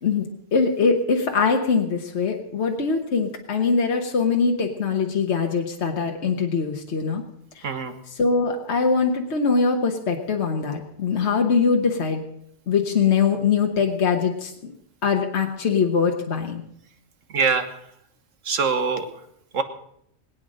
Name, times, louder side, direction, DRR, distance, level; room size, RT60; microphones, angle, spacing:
voice 1, 0.0-7.2 7.5-7.6 8.2-12.2 12.7-14.7 15.0-16.6, left 5 dB, 60° left, 2 dB, 1.5 m, -22 dB
voice 2, 7.6-8.0 17.3-17.8 18.4-19.1 19.5-19.6, right 5 dB, 80° right, 8 dB, 1.7 m, -23 dB
20.5 x 9.1 x 6.4 m, 0.73 s
omnidirectional pair, 1.3 m